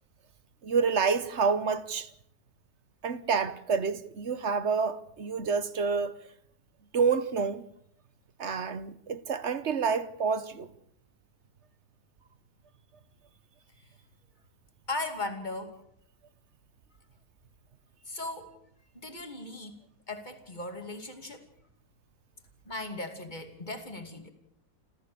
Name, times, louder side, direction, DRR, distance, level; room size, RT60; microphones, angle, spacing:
voice 1, 0.6-2.1 3.0-6.2 6.9-7.6 8.4-10.7, right 5 dB, 50° right, 1.2 m, -28 dB
voice 2, 14.9-15.7 18.1-18.5 18.9-19.8 20.1-21.4 22.7-24.3, left 2 dB, 30° left, 2.7 m, -37 dB
28.0 x 15.0 x 6.9 m
omnidirectional pair, 1.7 m